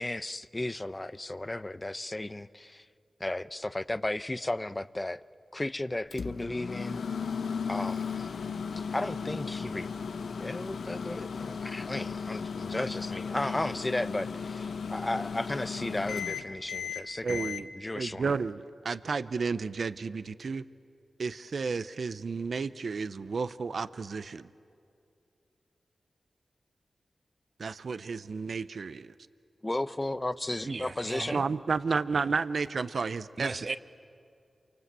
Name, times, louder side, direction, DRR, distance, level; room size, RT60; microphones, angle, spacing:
voice 1, 0.0-2.9 3.2-5.2 5.5-7.0 7.7-8.5 8.8-9.9 10.4-18.3 29.6-31.4, left 1 dB, 25° left, 14 dB, 0.8 m, -34 dB
Microwave oven, 6.1-17.6, left 6 dB, 85° left, 0.8 m, -36 dB
voice 2, 17.2-17.7 17.9-20.6 21.2-24.5 27.6-29.1 31.3-33.5, right 4 dB, 75° right, 13 dB, 0.7 m, -32 dB
voice 3, 30.6-31.4 33.4-33.8, right 3 dB, 55° right, 12 dB, 1.0 m, -35 dB
28.5 x 25.0 x 8.2 m, 2.5 s
cardioid pair, 40°, 0 cm